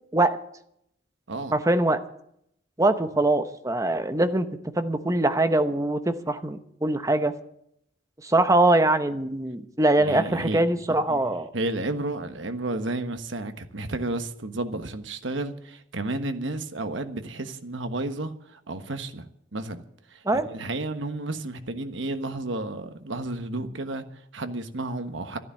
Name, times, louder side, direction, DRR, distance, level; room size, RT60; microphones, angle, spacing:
voice 1, 1.5-2.0 2.8-4.5 4.8-7.3 8.2-11.5 20.2-20.5, right 2 dB, 15° right, 0.9 m, -22 dB
voice 2, 10.0-10.6 11.1-11.3 11.5-19.2 19.5-19.8 20.1-25.4, right 2 dB, 70° right, 1.3 m, -32 dB
13.0 x 11.0 x 7.5 m
head